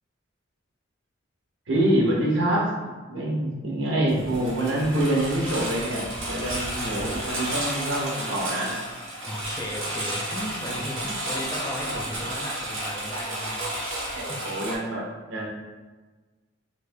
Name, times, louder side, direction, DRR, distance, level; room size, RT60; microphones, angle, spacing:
voice 1, 1.7-2.7 3.1-8.7 14.1-15.0 15.3-15.5, right 1 dB, 65° right, -4 dB, 1.0 m, -25 dB
Engine, 4.1-14.7, right 1 dB, 80° right, 1.3 m, -32 dB
voice 2, 9.2-13.7 14.3-14.5, equal, 15° left, -3 dB, 0.5 m, -35 dB
3.2 x 2.7 x 3.3 m, 1.3 s
head